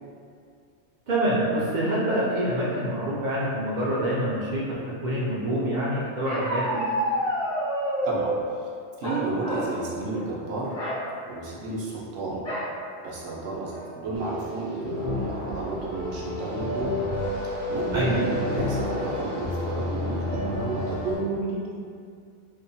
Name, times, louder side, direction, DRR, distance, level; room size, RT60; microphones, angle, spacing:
voice 1, 1.1-4.6 5.0-6.8 17.9-18.1, right 1 dB, 55° right, -8 dB, 0.5 m, -26 dB
Bark, 6.2-8.4 9.0-9.8 10.1-10.3 10.7-11.0 12.4-12.7 13.3-13.4 13.7-14.1, equal, 80° left, 1.0 m, -28 dB
voice 2, 9.0-10.7 11.3-12.4 13.0-16.9 17.7-21.8, right 3 dB, 90° right, -5 dB, 1.0 m, -31 dB
sound 1, 14.1-21.1, left 1 dB, 50° left, 0.8 m, -30 dB
2.9 x 2.1 x 2.6 m, 2.3 s
omnidirectional pair, 1.2 m